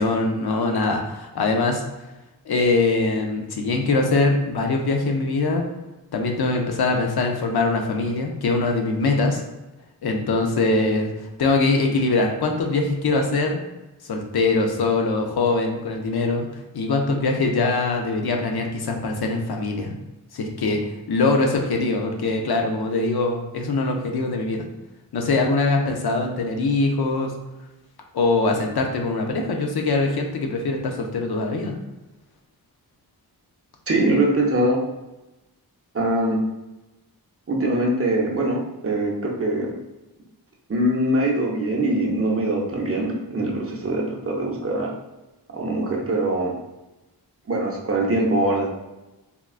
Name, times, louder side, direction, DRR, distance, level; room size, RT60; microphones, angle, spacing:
voice 1, 0.0-1.8 2.5-5.6 6.1-9.4 10.0-13.6 14.0-16.5 16.7-20.0 20.3-20.8 21.1-24.7 25.1-27.3 28.1-31.8, left 3 dB, 75° left, 2 dB, 0.6 m, -22 dB
voice 2, 33.9-34.8 35.9-36.4 37.5-39.7 40.7-44.9 45.5-46.5 47.5-48.7, right 1 dB, 35° right, -2 dB, 0.6 m, -22 dB
3.6 x 2.2 x 2.4 m, 1.0 s
wide cardioid pair, 90°, 39 cm